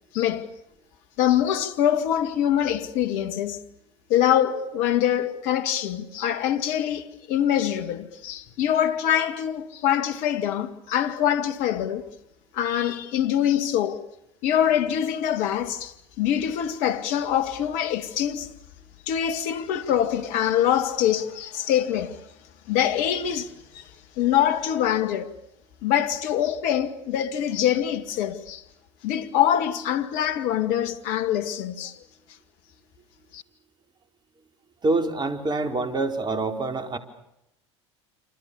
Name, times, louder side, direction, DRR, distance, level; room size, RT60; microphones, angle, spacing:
voice 1, 0.1-0.5 1.2-3.6 4.1-12.1 12.5-14.0 14.4-18.5 19.1-22.2 22.7-23.9 24.2-25.3 25.8-28.6 29.0-32.0 33.3-33.4, left 10 dB, 60° left, 2.2 m, -24 dB
voice 2, 34.8-37.0, right 3 dB, 30° right, 4.6 m, -26 dB
27.5 x 27.0 x 7.0 m
hypercardioid pair, 75°, 15 cm